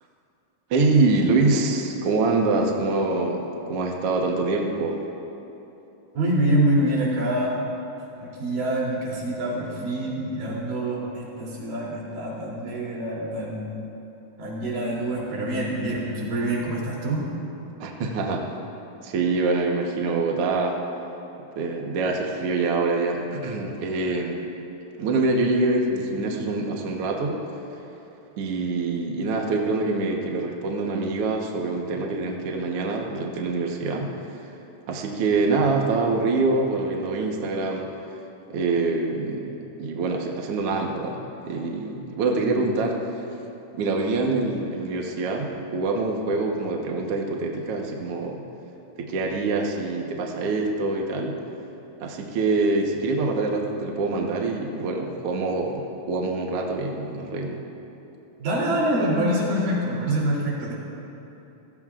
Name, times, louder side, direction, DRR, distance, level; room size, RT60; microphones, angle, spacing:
voice 1, 0.7-5.0 17.8-18.5 19.0-20.8 21.6-24.4 25.0-27.4 28.4-34.5 34.9-37.9 38.5-43.2 43.7-48.4 49.0-51.4 52.0-57.6, right 3 dB, 60° right, 0 dB, 1.7 m, -25 dB
voice 2, 6.1-7.6 8.2-13.7 14.4-17.2 58.4-60.7, right 1 dB, 80° right, -5 dB, 4.9 m, -25 dB
28.0 x 17.0 x 2.5 m, 3.0 s
omnidirectional pair, 3.8 m